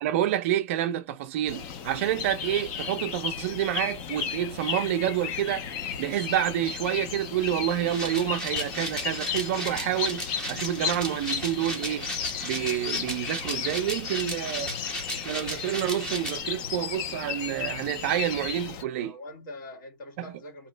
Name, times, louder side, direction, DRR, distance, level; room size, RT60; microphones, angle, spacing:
voice 1, 0.0-5.7 6.0-12.1 12.4-14.7 15.2-19.1 20.2-20.3, right 11 dB, 30° right, 0.5 m, -28 dB
sound 1, 1.5-18.8, left 7 dB, 25° left, 0.4 m, -34 dB
sound 2, 7.9-16.4, equal, 5° left, 0.8 m, -36 dB
voice 2, 18.7-20.7, left 1 dB, 50° left, 2.3 m, -44 dB
3.1 x 2.8 x 3.8 m
supercardioid pair, 175°, 13 cm